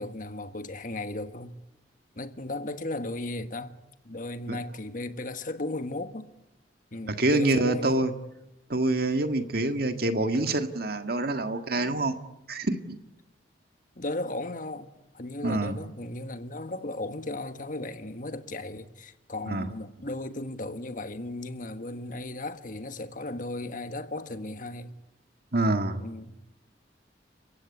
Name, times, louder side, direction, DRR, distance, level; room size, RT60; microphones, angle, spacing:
voice 1, 0.0-1.5 2.1-3.7 4.0-6.3 6.9-8.0 13.9-24.9 26.0-26.3, left 2 dB, 45° left, 1.5 m, -36 dB
voice 2, 7.1-8.1 8.7-12.2 12.5-13.0 15.4-15.8 19.5-19.7 25.5-26.0, right 2 dB, 55° right, 1.8 m, -26 dB
29.5 x 16.0 x 9.9 m
head